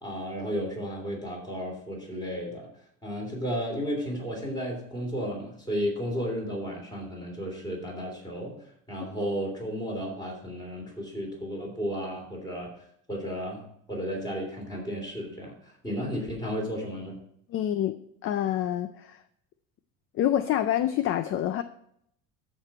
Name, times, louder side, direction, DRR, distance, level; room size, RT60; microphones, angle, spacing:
voice 1, 0.0-2.7 3.0-8.6 8.9-12.7 13.1-13.6 13.9-17.2, equal, 10° left, -1 dB, 3.1 m, -33 dB
voice 2, 17.5-17.9 18.2-19.2 20.2-21.6, left 11 dB, 35° left, 11 dB, 0.4 m, -26 dB
13.5 x 5.2 x 4.2 m, 0.71 s
cardioid pair, 165°, 38 cm